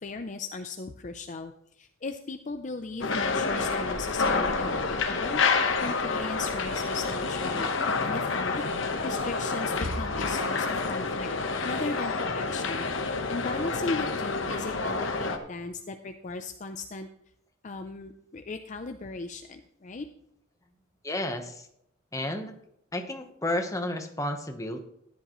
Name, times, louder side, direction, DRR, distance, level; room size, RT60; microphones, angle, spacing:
voice 1, 0.0-5.4 5.8-8.6 9.0-11.3 11.6-12.9 13.3-17.1 17.6-20.1, left 3 dB, 40° left, 7 dB, 0.5 m, -37 dB
sound 1, 3.0-15.4, left 4 dB, 70° left, 1.1 m, -28 dB
voice 2, 21.0-21.7 22.1-22.5 22.9-24.8, left 1 dB, 15° left, 5 dB, 1.1 m, -32 dB
14.0 x 10.5 x 3.1 m, 0.73 s
head